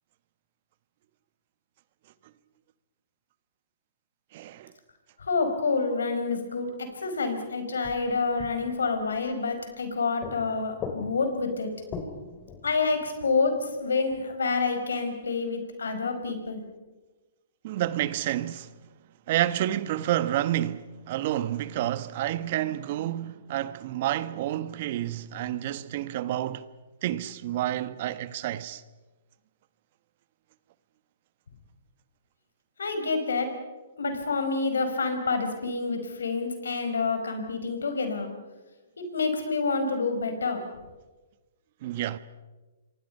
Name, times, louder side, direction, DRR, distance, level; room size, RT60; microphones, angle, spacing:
voice 1, 4.3-4.7 17.6-18.8 19.3-26.7 27.0-28.8 41.8-42.2, right 13 dB, 50° right, 1.2 m, -29 dB
voice 2, 5.3-11.7 12.6-16.6 32.8-33.5 34.0-38.3 39.0-40.6, left 4 dB, 85° left, 5.1 m, -28 dB
sound 1, 6.9-7.4 7.8-9.9 10.2-14.6 14.9-15.0, left 5 dB, 25° left, 3.3 m, -42 dB
27.5 x 24.5 x 5.6 m
hypercardioid pair, 140°, 0 cm